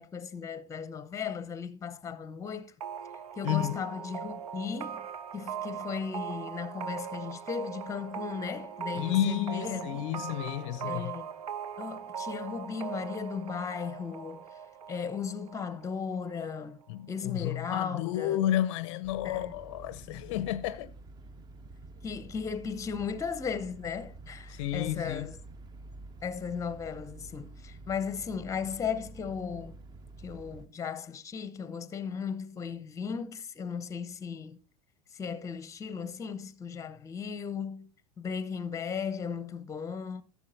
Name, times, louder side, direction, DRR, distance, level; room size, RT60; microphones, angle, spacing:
voice 1, 0.0-2.7 3.4-5.1 5.3-10.1 10.8-11.3 11.8-14.5 14.9-16.8 17.1-18.4 19.2-19.5 22.0-25.4 26.2-29.8 30.2-34.6 35.1-37.9 38.2-40.2, left 6 dB, 15° left, 0.7 m, -36 dB
sound 1, 2.8-16.3, right 8 dB, 75° right, 0.6 m, -40 dB
voice 2, 3.4-3.8 8.9-11.1 16.9-20.9 24.5-25.3, left 12 dB, 50° left, 0.5 m, -31 dB
sound 2, 19.0-30.7, right 2 dB, 20° right, 0.6 m, -49 dB
14.5 x 7.0 x 2.6 m
figure-of-eight pair, 85°, 19 cm